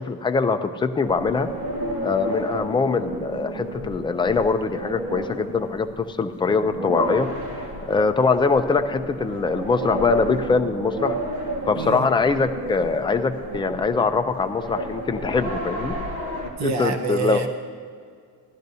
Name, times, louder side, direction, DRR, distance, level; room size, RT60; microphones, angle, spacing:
voice 1, 0.0-1.5 2.0-7.3 7.8-11.2 11.7-16.0 16.6-17.4, left 4 dB, 15° left, 7 dB, 0.3 m, -23 dB
sound 1, 1.0-16.5, right 1 dB, 85° right, 1.8 m, -32 dB
voice 2, 11.8-12.1 16.6-17.5, right 4 dB, 45° right, 7 dB, 0.8 m, -26 dB
16.5 x 12.0 x 2.7 m, 2.1 s
cardioid pair, 165°, 39 cm